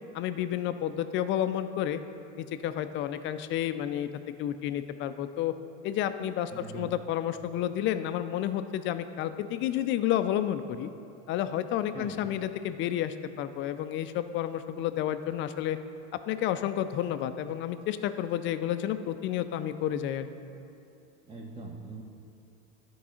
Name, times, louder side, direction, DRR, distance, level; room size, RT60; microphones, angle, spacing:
voice 1, 0.1-2.0 2.4-4.1 4.4-5.5 5.8-10.9 11.3-15.8 16.3-20.3, left 11 dB, 35° left, 11 dB, 0.4 m, -30 dB
voice 2, 6.5-6.9 11.9-12.2 21.3-22.0, right 3 dB, 15° right, -2 dB, 0.7 m, -42 dB
11.0 x 4.7 x 4.3 m, 2.8 s
supercardioid pair, 110°, 37 cm